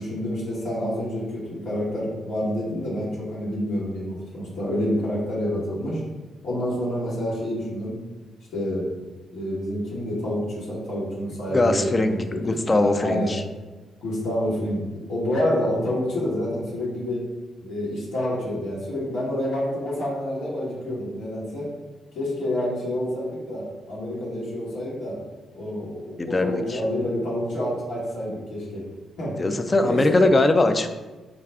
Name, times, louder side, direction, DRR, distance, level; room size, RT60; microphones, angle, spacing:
voice 1, 0.0-6.0 6.4-8.0 8.5-8.9 9.3-12.2 12.5-13.3 14.0-14.8 15.1-17.2 17.6-21.7 22.1-25.2 25.5-28.8 29.2-29.4 29.8-30.2, left 1 dB, 80° left, -8 dB, 1.4 m, -28 dB
voice 2, 11.5-12.1 12.4-13.4 26.2-26.8 29.4-30.9, left 2 dB, 35° left, 7 dB, 0.4 m, -21 dB
4.8 x 2.3 x 3.3 m, 1.2 s
hypercardioid pair, 45°, 0 cm